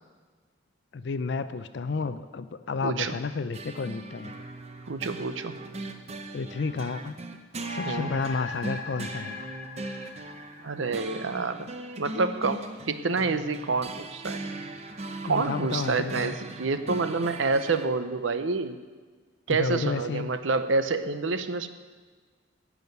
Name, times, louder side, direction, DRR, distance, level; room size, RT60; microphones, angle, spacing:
voice 1, 0.9-4.3 6.3-7.2 7.7-9.4 15.3-16.3 19.5-20.3, left 4 dB, 55° left, 12 dB, 0.4 m, -31 dB
voice 2, 2.8-3.1 4.9-5.5 7.9-8.1 10.6-11.7 12.0-14.4 15.2-18.8 19.5-21.7, right 4 dB, 70° right, 11 dB, 0.7 m, -28 dB
sound 1, 3.5-17.9, right 2 dB, 30° right, 0.7 m, -39 dB
sound 2, 7.5-12.2, left 5 dB, 80° left, 1.2 m, -41 dB
11.0 x 6.2 x 9.1 m, 1.5 s
head